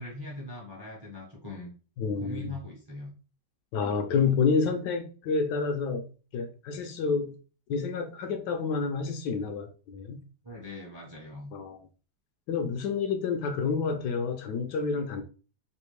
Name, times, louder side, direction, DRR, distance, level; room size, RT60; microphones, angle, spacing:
voice 1, 0.0-1.7 2.2-3.1 10.4-11.5, left 2 dB, 25° right, 0.5 m, -41 dB
voice 2, 2.0-2.5 3.7-7.3 7.7-10.2 11.5-11.8 12.5-15.2, left 5 dB, 75° left, 1.1 m, -29 dB
3.4 x 2.6 x 3.1 m
omnidirectional pair, 1.9 m